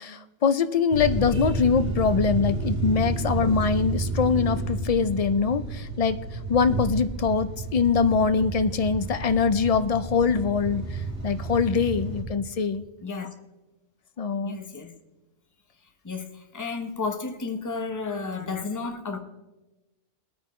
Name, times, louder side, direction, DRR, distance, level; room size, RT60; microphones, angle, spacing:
voice 1, 0.0-6.2 6.5-12.8 14.2-14.6, left 5 dB, 60° left, 11 dB, 0.3 m, -23 dB
sound 1, 0.9-12.2, right 3 dB, 85° right, 3.6 m, -31 dB
voice 2, 14.4-14.9 16.0-19.2, left 4 dB, 15° left, 5 dB, 0.8 m, -32 dB
21.5 x 9.3 x 3.1 m, 1.1 s
omnidirectional pair, 1.2 m